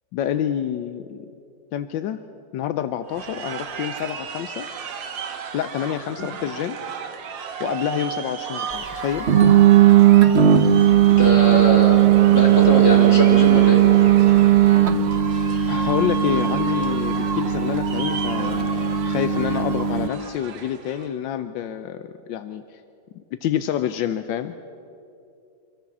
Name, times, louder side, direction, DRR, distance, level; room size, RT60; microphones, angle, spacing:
voice 1, 0.1-1.3 1.7-2.2 2.5-4.7 5.5-6.8 7.6-9.3 15.7-22.6 23.1-24.6, left 10 dB, 85° left, 10 dB, 1.4 m, -28 dB
sound 1, 3.1-21.1, right 6 dB, 80° right, 1.9 m, -34 dB
sound 2, 9.3-20.1, right 11 dB, 45° right, 0.9 m, -16 dB
voice 2, 11.1-13.8, left 1 dB, 40° left, 0 dB, 3.3 m, -22 dB
25.0 x 14.5 x 7.3 m, 2.6 s
omnidirectional pair, 2.0 m